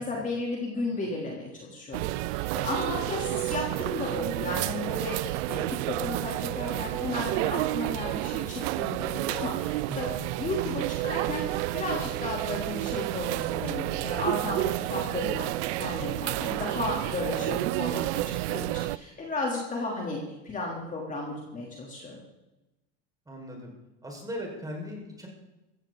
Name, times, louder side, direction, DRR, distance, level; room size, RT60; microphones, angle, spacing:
voice 1, 0.0-10.1 10.4-15.5 15.8-22.2, left 2 dB, 20° left, -2 dB, 3.3 m, -34 dB
sound 1, 1.9-19.0, right 18 dB, 80° right, 0.6 m, -30 dB
voice 2, 9.9-10.3 17.2-17.6 23.3-23.7 24.0-25.3, equal, 10° right, -1 dB, 5.2 m, -39 dB
15.5 x 14.5 x 4.0 m, 0.99 s
supercardioid pair, 125°, 34 cm